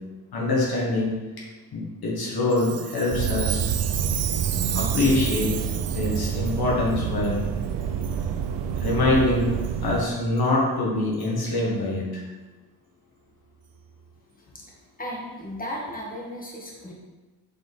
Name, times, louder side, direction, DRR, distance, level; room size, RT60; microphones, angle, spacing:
voice 1, 0.3-1.1 1.7-3.7 4.7-5.5 5.9-7.4 8.8-9.6 9.8-12.2, left 2 dB, 65° left, -4 dB, 1.8 m, -24 dB
Chime, 2.5-6.6 7.2-7.3 8.0-8.2 8.8-9.0 9.6-9.7 10.4-10.5 11.2-11.3, right 10 dB, 40° right, 0.4 m, -33 dB
sound 1, 3.1-10.0, right 7 dB, 85° right, 0.6 m, -28 dB
voice 2, 15.0-16.9, equal, 20° left, -3 dB, 2.0 m, -35 dB
7.7 x 4.2 x 3.6 m, 1.2 s
cardioid pair, 60°, 40 cm